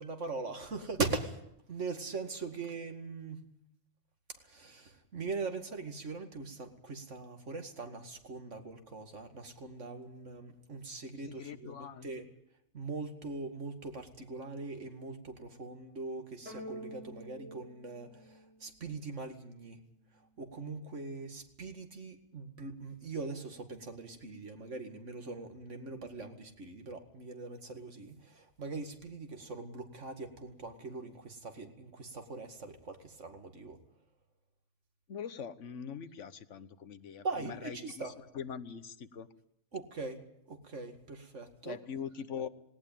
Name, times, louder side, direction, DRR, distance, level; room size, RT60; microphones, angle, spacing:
voice 1, 0.0-1.4 1.7-3.4 4.5-12.2 12.7-18.1 18.6-19.8 20.4-33.8 37.2-38.1 39.7-40.2 40.5-41.8, right 3 dB, 85° right, 6 dB, 2.5 m, -41 dB
voice 2, 11.1-12.3 35.1-39.3 41.6-42.5, left 7 dB, 80° left, 13 dB, 1.4 m, -43 dB
sound 1, 16.5-19.0, right 1 dB, 10° right, 4.9 m, -47 dB
18.5 x 18.5 x 9.1 m, 0.77 s
omnidirectional pair, 1.2 m